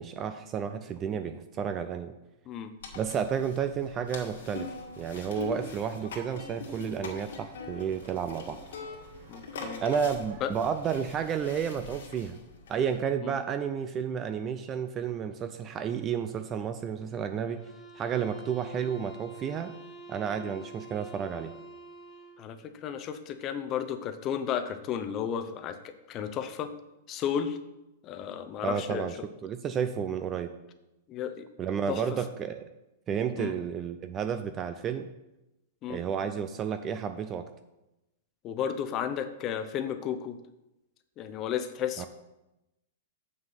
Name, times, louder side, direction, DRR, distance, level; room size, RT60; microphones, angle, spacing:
voice 1, 0.0-2.1 3.0-4.7 5.0-8.6 9.8-12.4 12.7-17.6 18.0-19.7 20.1-21.5 28.6-29.1 29.4-30.5 31.6-32.6 33.1-35.1 35.9-37.5 42.0-42.1, right 7 dB, 25° right, 9 dB, 0.4 m, -31 dB
sound 1, 2.8-12.9, left 4 dB, 80° left, 2.0 m, -43 dB
sound 2, 4.3-11.6, right 3 dB, 75° right, 1.9 m, -56 dB
voice 2, 9.3-9.8 10.4-10.5 13.2-13.3 22.4-22.6 22.8-26.7 27.1-27.6 28.0-29.1 31.1-31.4 31.9-32.0 33.4-33.5 35.8-36.0 38.4-40.4 41.2-42.1, left 8 dB, 30° left, 8 dB, 0.7 m, -33 dB
sound 3, 17.5-22.5, right 3 dB, 10° left, 1.6 m, -47 dB
7.2 x 6.2 x 5.8 m, 0.95 s
supercardioid pair, 155°, 0 cm